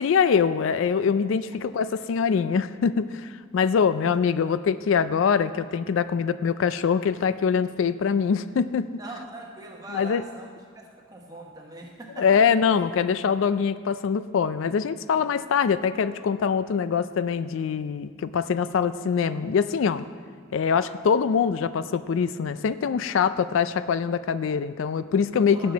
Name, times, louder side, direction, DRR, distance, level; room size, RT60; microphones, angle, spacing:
voice 1, 0.0-8.9 9.9-10.2 12.2-20.0 20.5-25.7, left 6 dB, 70° left, 14 dB, 0.3 m, -23 dB
voice 2, 9.0-12.4 25.5-25.7, right 2 dB, 20° right, 0 dB, 1.2 m, -41 dB
17.5 x 6.7 x 4.0 m, 2.1 s
head